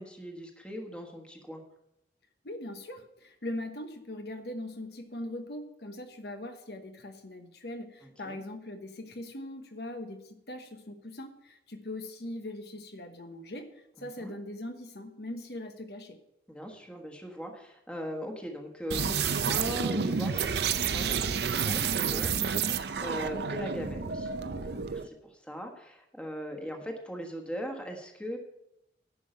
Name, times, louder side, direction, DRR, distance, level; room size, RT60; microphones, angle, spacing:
voice 1, 0.0-1.6 8.0-8.4 14.0-14.3 16.5-28.4, equal, 5° left, 2 dB, 1.4 m, -40 dB
voice 2, 2.4-16.2, left 1 dB, 60° left, 6 dB, 1.1 m, -41 dB
sound 1, 18.9-25.1, right 6 dB, 65° right, 0.6 m, -30 dB
11.0 x 5.6 x 7.8 m, 0.82 s
head